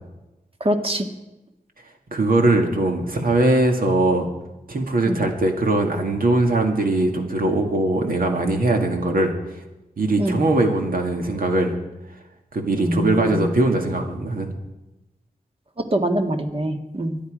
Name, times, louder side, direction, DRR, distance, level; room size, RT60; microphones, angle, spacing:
voice 1, 0.6-1.0 5.1-5.2 10.2-10.4 12.7-13.4 15.8-17.2, right 1 dB, 40° right, 5 dB, 1.6 m, -24 dB
voice 2, 2.1-4.3 4.7-9.3 10.0-11.8 12.5-14.5, right 2 dB, 80° right, 3 dB, 2.1 m, -21 dB
24.0 x 10.5 x 5.1 m, 1.0 s
wide cardioid pair, 85°, 15 cm